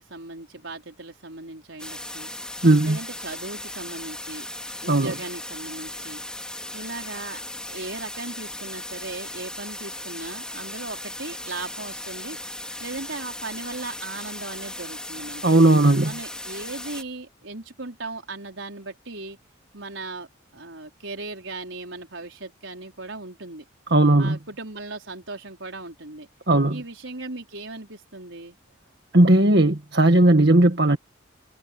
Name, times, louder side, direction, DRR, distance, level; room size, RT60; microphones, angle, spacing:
voice 1, 0.0-2.3 2.8-4.5 4.8-6.2 6.7-7.4 7.7-12.4 12.8-15.4 16.0-19.4 19.7-20.3 20.5-23.7 24.2-26.3 26.7-28.6, right 3 dB, 70° right, 4.6 m, -37 dB
sound 1, 1.8-17.0, left 1 dB, 5° left, 4.2 m, -37 dB
voice 2, 2.6-3.0 4.9-5.1 15.4-16.1 23.9-24.4 26.5-26.8 29.1-31.0, right 1 dB, 55° right, 1.7 m, -17 dB
head